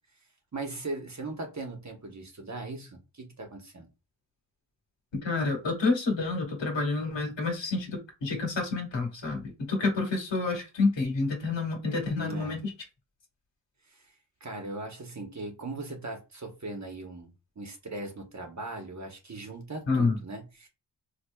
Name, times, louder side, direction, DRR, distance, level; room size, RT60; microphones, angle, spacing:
voice 1, 0.5-3.9 12.1-12.6 14.4-20.7, right 2 dB, 40° right, 1.0 m, -39 dB
voice 2, 5.2-12.7 19.9-20.2, left 3 dB, 75° left, 1.6 m, -28 dB
4.2 x 2.8 x 2.3 m
wide cardioid pair, 105°, 44 cm